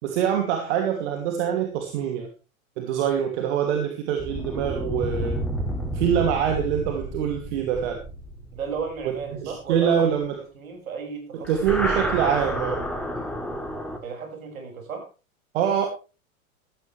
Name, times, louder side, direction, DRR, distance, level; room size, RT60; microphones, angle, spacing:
voice 1, 0.0-2.3 2.8-5.4 5.9-8.0 9.0-9.1 9.4-10.4 11.5-12.8 15.5-15.9, right 8 dB, 50° right, 4 dB, 2.8 m, -24 dB
sound 1, 4.2-9.8 11.4-14.0, equal, 5° left, 3.0 m, -30 dB
voice 2, 8.5-10.0 10.5-11.5 14.0-15.1, right 6 dB, 70° right, 3 dB, 6.3 m, -34 dB
15.0 x 14.5 x 3.4 m, 0.32 s
figure-of-eight pair, 95°, 43 cm